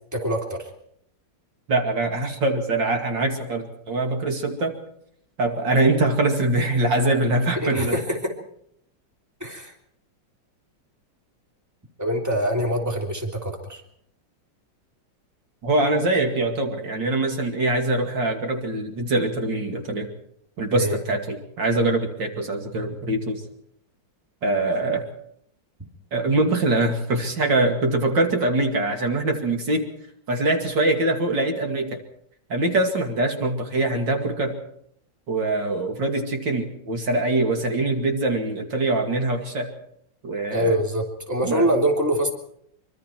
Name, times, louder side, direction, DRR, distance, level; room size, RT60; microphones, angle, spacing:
voice 1, 0.1-0.7 7.5-8.3 9.4-9.7 12.0-13.8 20.7-21.0 40.5-42.3, equal, 10° right, 1 dB, 3.2 m, -24 dB
voice 2, 1.7-4.8 5.4-8.0 15.6-20.1 20.6-23.4 24.4-25.0 26.1-29.9 30.3-32.0 32.5-34.5 35.3-39.7 40.2-40.7 41.4-41.7, right 2 dB, 75° right, 3 dB, 3.0 m, -23 dB
24.5 x 24.5 x 4.5 m, 0.69 s
omnidirectional pair, 2.0 m